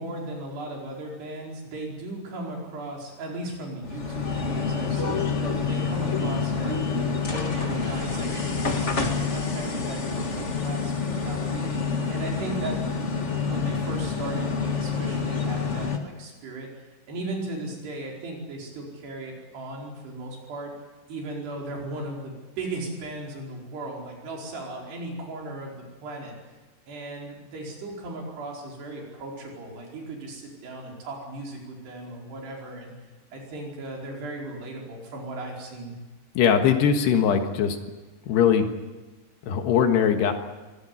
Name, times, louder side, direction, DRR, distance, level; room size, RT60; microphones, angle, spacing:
voice 1, 0.0-6.8 7.2-11.7 12.1-12.9 13.5-20.7 21.1-26.3 26.9-32.9 33.3-35.9, right 2 dB, 80° right, -1 dB, 6.9 m, -37 dB
sound 1, 3.8-16.0, left 5 dB, 50° left, 0.8 m, -27 dB
voice 2, 36.4-37.8 38.3-38.7 39.5-40.3, left 8 dB, 85° left, 5 dB, 3.6 m, -20 dB
24.0 x 18.0 x 9.9 m, 1.2 s
omnidirectional pair, 4.7 m